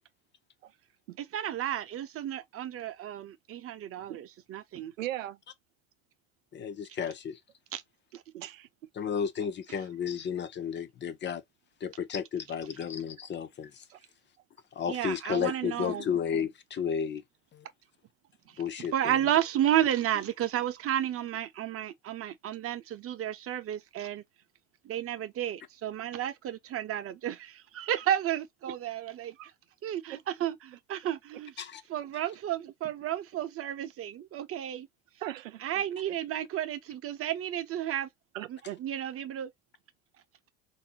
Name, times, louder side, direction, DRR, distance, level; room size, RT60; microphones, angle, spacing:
voice 1, 1.2-4.9 7.7-7.8 14.9-16.0 18.5-18.6 18.9-24.2 24.8-29.3 29.8-31.5 31.9-34.9 35.6-38.1 38.5-39.5, right 11 dB, 35° right, 0.8 m, -32 dB
voice 2, 5.0-5.4 8.3-8.7 28.7-28.8 29.4-29.5 30.1-30.2 35.2-35.8 38.3-38.8, right 14 dB, 85° right, 0.6 m, -38 dB
voice 3, 6.5-7.4 9.0-11.4 11.8-13.8 14.7-17.2 17.5-17.7 18.6-19.2 31.6-31.8, left 7 dB, 30° left, 0.6 m, -33 dB
3.6 x 2.8 x 2.8 m
hypercardioid pair, 80°, 38 cm